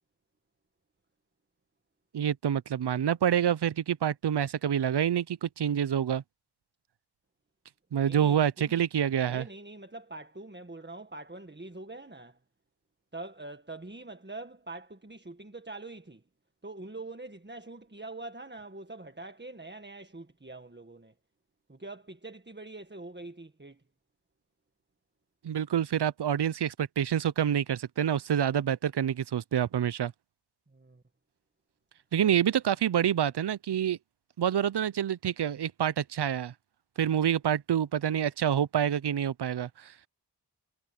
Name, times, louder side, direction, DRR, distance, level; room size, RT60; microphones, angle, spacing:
voice 1, 2.1-6.2 7.9-9.4 25.4-30.1 32.1-34.0 34.4-36.5 37.0-39.9, right 9 dB, 80° right, 0.6 m, -27 dB
voice 2, 8.0-8.8 9.2-12.4 13.1-16.2 16.6-21.1 21.7-23.8 30.7-31.0 32.3-32.4, right 2 dB, 25° right, 1.7 m, -44 dB
wide cardioid pair, 50°, 40 cm